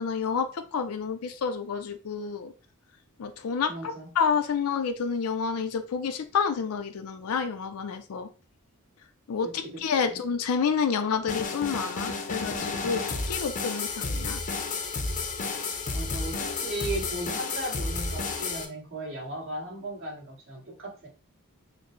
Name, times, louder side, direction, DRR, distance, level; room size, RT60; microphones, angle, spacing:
voice 1, 0.0-2.5 3.2-8.3 9.3-14.4, left 6 dB, 85° left, 7 dB, 0.4 m, -29 dB
voice 2, 3.7-4.1 9.6-10.2 15.9-21.1, right 1 dB, 60° right, -4 dB, 1.7 m, -36 dB
sound 1, 11.3-18.7, left 3 dB, 35° left, 0.5 m, -31 dB
4.1 x 2.0 x 3.1 m, 0.35 s
head